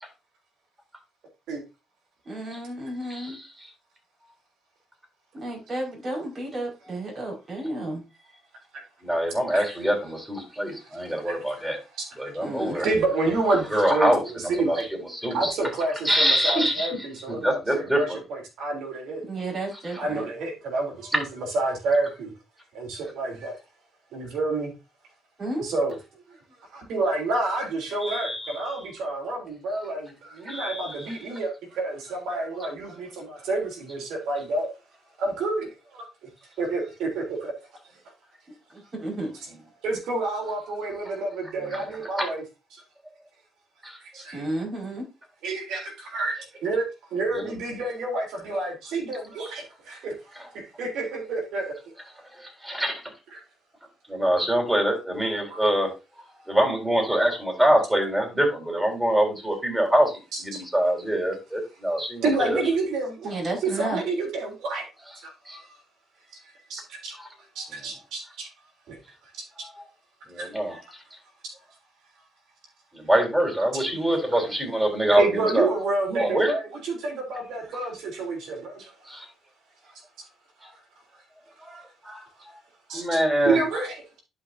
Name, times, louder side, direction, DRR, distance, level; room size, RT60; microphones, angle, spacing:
voice 1, 2.2-3.4 5.3-8.0 12.4-12.8 19.2-20.2 25.4-25.7 38.7-39.3 44.3-45.0 63.2-64.0, right 1 dB, 45° right, -1 dB, 5.1 m, -32 dB
voice 2, 3.1-3.7 9.0-11.8 12.2-12.9 13.7-14.8 15.1-15.5 16.0-18.2 28.0-28.8 30.5-31.2 41.7-41.8 42.1-42.3 43.8-44.0 47.3-47.5 52.3-53.1 54.1-55.9 56.5-62.6 65.5-65.6 67.2-67.3 69.6-69.7 70.3-71.0 72.9-75.7 76.1-76.5 79.0-79.3 80.6-80.7 81.6-82.6 82.9-83.6, right 1 dB, 10° right, 1 dB, 4.1 m, -25 dB
voice 3, 12.8-14.1 14.5-14.9 15.3-19.2 20.0-21.2 21.5-22.3 22.7-23.6 24.1-24.7 25.6-26.0 26.7-34.7 35.2-36.1 36.6-37.5 39.3-39.5 39.8-42.4 42.7-42.8 44.0-44.4 45.4-46.8 47.1-51.7 53.3-53.4 55.5-55.6 62.2-63.4 63.7-64.9 65.2-65.7 66.7-67.2 67.5-68.5 68.9-69.0 69.3-69.4 70.4-70.5 71.4-71.5 73.7-73.8 75.1-79.2 82.9-83.0 83.4-84.2, right 3 dB, 85° right, 1 dB, 3.2 m, -29 dB
11.5 x 5.4 x 2.7 m, 0.26 s
cardioid pair, 90°, 0 cm